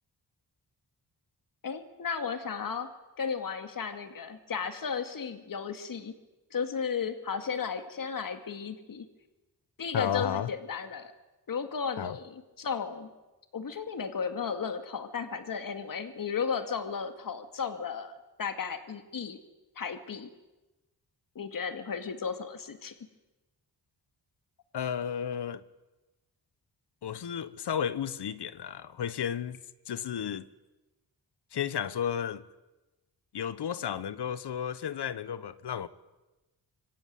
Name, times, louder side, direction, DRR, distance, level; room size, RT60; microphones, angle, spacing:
voice 1, 1.6-2.9 3.2-6.1 6.5-9.1 9.8-11.1 11.5-13.1 13.5-18.1 18.4-19.4 19.8-20.3 21.4-22.9, left 6 dB, 55° left, 2.2 m, -34 dB
voice 2, 9.9-10.5 12.0-12.2 24.7-25.6 27.0-29.6 29.9-30.4 31.5-32.4 33.3-35.9, left 8 dB, 90° left, 1.3 m, -33 dB
25.5 x 24.5 x 9.5 m
wide cardioid pair, 130°, 39 cm